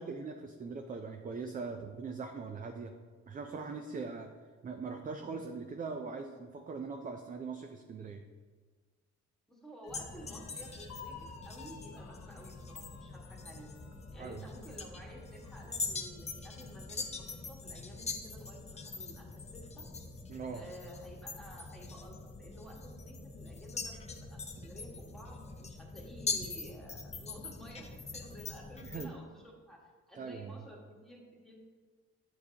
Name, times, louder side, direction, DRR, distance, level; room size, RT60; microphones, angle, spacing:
voice 1, 0.0-2.9 3.3-4.3 4.6-8.2 14.2-14.4 20.3-20.6 28.8-29.1 30.2-30.6, right 4 dB, 30° right, 5 dB, 0.4 m, -41 dB
voice 2, 9.5-13.7 14.1-19.9 20.5-31.6, equal, ahead, -2 dB, 1.6 m, -52 dB
sound 1, 9.8-17.5 17.9-18.0 18.4-19.1, left 6 dB, 60° left, 0.7 m, -56 dB
sound 2, 9.9-29.1, left 4 dB, 20° left, 0.6 m, -43 dB
8.1 x 4.6 x 2.8 m, 1.4 s
cardioid pair, 90°, 30 cm